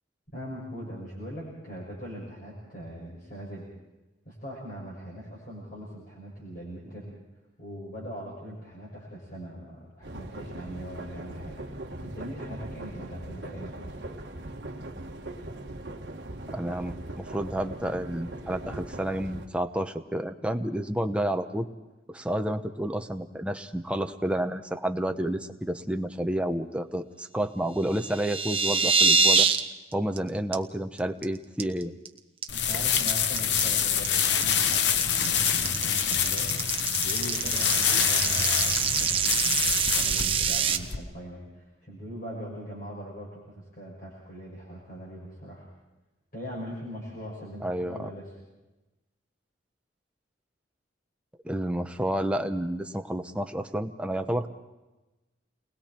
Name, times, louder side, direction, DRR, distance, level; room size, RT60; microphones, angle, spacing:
voice 1, 0.3-3.7 4.2-7.1 7.6-11.6 12.0-14.0 32.5-36.5 36.7-45.6 46.3-48.3, equal, 45° left, -5 dB, 6.3 m, -41 dB
sound 1, 10.0-19.5, right 1 dB, 60° right, 1.6 m, -40 dB
voice 2, 16.5-21.7 22.1-29.5 29.9-31.9 47.6-48.1 51.4-54.5, right 1 dB, 5° right, 6 dB, 0.9 m, -30 dB
sound 2, 27.9-29.6 29.9-30.2 30.5-30.6 31.0-31.2 31.6-32.1 32.4-40.8, right 5 dB, 30° right, 1.0 m, -25 dB
sound 3, 32.5-41.0, left 8 dB, 60° left, 0.9 m, -26 dB
29.5 x 20.5 x 4.4 m, 1.1 s
head